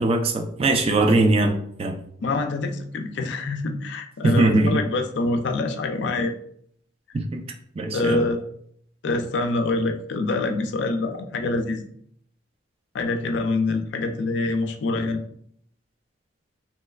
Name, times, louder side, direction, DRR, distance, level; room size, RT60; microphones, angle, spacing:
voice 1, 0.0-1.5 1.8-1.9 4.2-4.7 7.3-7.4 7.8-8.2, right 2 dB, 30° right, 4 dB, 0.3 m, -20 dB
voice 2, 2.2-6.3 7.9-8.4 9.0-11.9 12.9-15.2, left 2 dB, 65° left, 5 dB, 0.4 m, -25 dB
3.2 x 3.1 x 2.3 m, 0.66 s
head